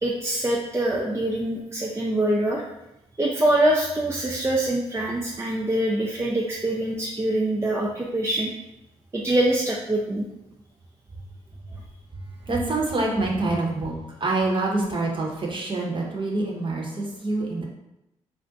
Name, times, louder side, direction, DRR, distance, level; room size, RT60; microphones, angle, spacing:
voice 1, 0.0-2.6 3.2-8.5 9.1-10.3, right 1 dB, 20° right, -3 dB, 0.5 m, -24 dB
voice 2, 12.5-17.6, right 2 dB, 35° right, -1 dB, 0.9 m, -26 dB
2.5 x 2.1 x 3.9 m, 0.88 s
hypercardioid pair, 45°, 14 cm